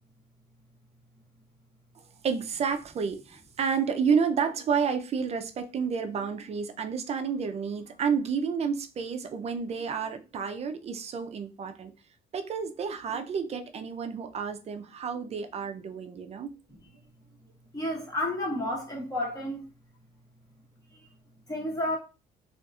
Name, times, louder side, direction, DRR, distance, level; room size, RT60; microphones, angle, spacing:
voice 1, 2.2-11.9 12.3-16.5, right 6 dB, 40° right, 0.4 m, -30 dB
voice 2, 17.7-19.6 20.9-21.1 21.5-22.0, left 1 dB, 20° left, 0.9 m, -31 dB
2.7 x 2.4 x 2.3 m
cardioid pair, 110°, 17 cm